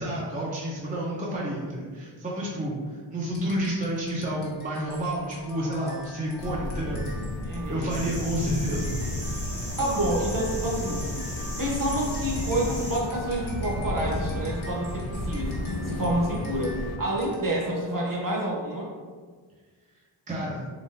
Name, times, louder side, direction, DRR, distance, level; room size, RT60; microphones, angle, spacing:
voice 1, 0.0-7.0 7.7-9.0 20.3-20.7, right 1 dB, 15° right, -5 dB, 0.6 m, -30 dB
sound 1, 3.3-17.8, left 2 dB, 70° left, 1.2 m, -45 dB
sound 2, 6.4-17.0, left 1 dB, 50° left, 0.5 m, -33 dB
voice 2, 7.4-8.0 9.8-11.1 11.6-15.6 15.9-18.9, right 1 dB, 45° right, -3 dB, 0.9 m, -28 dB
sound 3, 7.9-13.0, equal, 15° left, 0.9 m, -37 dB
4.0 x 3.0 x 2.5 m, 1.5 s
wide cardioid pair, 110°, 48 cm